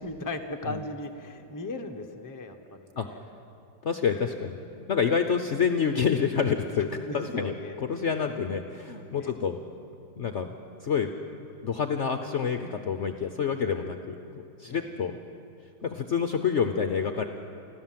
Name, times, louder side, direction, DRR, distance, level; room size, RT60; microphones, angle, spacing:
voice 1, 0.0-3.2 7.0-7.8 8.2-8.6 9.1-9.4 13.6-13.7 14.6-14.8, left 2 dB, 15° left, 4 dB, 0.9 m, -37 dB
voice 2, 3.8-7.5 7.8-9.6 10.2-11.1 11.6-15.2 15.8-17.2, left 6 dB, 55° left, 7 dB, 0.9 m, -28 dB
30.0 x 12.5 x 7.5 m, 2.6 s
omnidirectional pair, 1.9 m